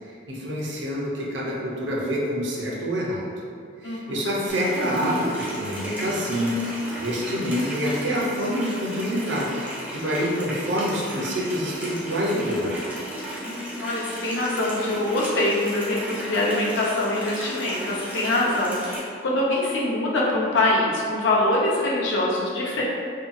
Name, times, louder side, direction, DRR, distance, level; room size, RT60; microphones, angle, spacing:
voice 1, 0.3-3.3 3.8-6.6 6.9-12.8, equal, 65° right, -4 dB, 0.5 m, -26 dB
voice 2, 3.8-4.2 13.4-22.8, left 1 dB, 70° left, -4 dB, 0.5 m, -24 dB
Water tap faucet, 4.5-19.0, right 1 dB, 10° right, 0.3 m, -35 dB
2.7 x 2.2 x 2.5 m, 2.2 s
head